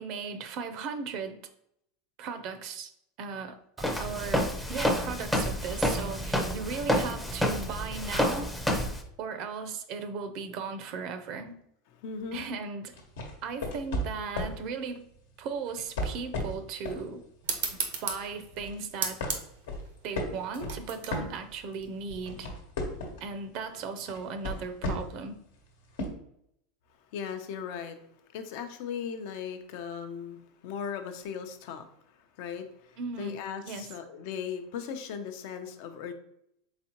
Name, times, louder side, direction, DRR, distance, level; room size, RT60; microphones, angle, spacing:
voice 1, 0.0-1.4 2.2-2.9 3.2-8.5 9.2-11.5 12.3-13.0 13.4-15.1 15.4-17.2 18.0-19.2 20.0-22.5 23.2-25.4 33.0-33.4 33.6-33.9, right 5 dB, 55° right, 9 dB, 0.5 m, -37 dB
Walk footsteps, 3.8-9.0, equal, 5° left, 0.5 m, -29 dB
voice 2, 12.0-12.4 27.1-28.0 28.3-31.9 32.1-36.1, left 7 dB, 65° left, 7 dB, 0.6 m, -38 dB
sound 1, 12.9-14.6 15.7-17.1 17.5-17.7 18.2-18.8 19.2-21.8 22.1-23.3 24.1-25.2 26.0-26.1, left 1 dB, 90° left, 1.1 m, -34 dB
sound 2, 17.4-22.5, right 6 dB, 85° right, 0.8 m, -36 dB
4.1 x 3.6 x 2.9 m, 0.73 s
supercardioid pair, 130°, 0 cm